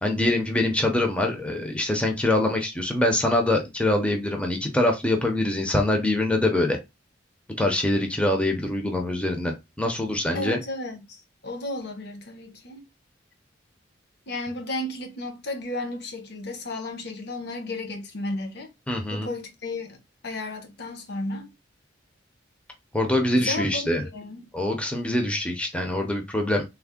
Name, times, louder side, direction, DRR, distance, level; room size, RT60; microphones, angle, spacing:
voice 1, 0.0-6.8 7.6-10.6 18.9-19.3 22.9-24.0 24.5-26.6, left 1 dB, 5° left, 0.5 m, -24 dB
voice 2, 10.3-12.8 14.3-18.7 19.1-20.0 20.2-21.5 23.3-24.5, left 2 dB, 60° left, 0.8 m, -33 dB
3.4 x 2.1 x 3.5 m
head